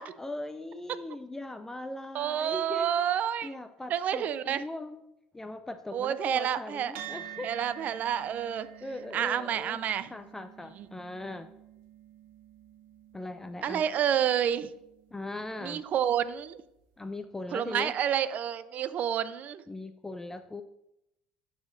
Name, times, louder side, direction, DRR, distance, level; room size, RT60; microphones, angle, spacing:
voice 1, 0.0-2.9 3.4-5.0 5.3-7.5 8.8-9.8 10.1-11.5 13.1-13.8 15.1-15.8 17.0-17.9 19.7-20.6, left 2 dB, 10° left, 9 dB, 0.3 m, -39 dB
voice 2, 2.1-3.5 3.9-4.6 5.9-6.9 7.4-8.7 9.1-10.1 13.6-14.7 15.6-16.6 17.5-19.6, right 9 dB, 50° right, 14 dB, 0.4 m, -29 dB
sound 1, 6.9-15.6, right 11 dB, 75° right, 0.9 m, -48 dB
11.5 x 4.9 x 2.6 m, 0.84 s
supercardioid pair, 90°, 4 cm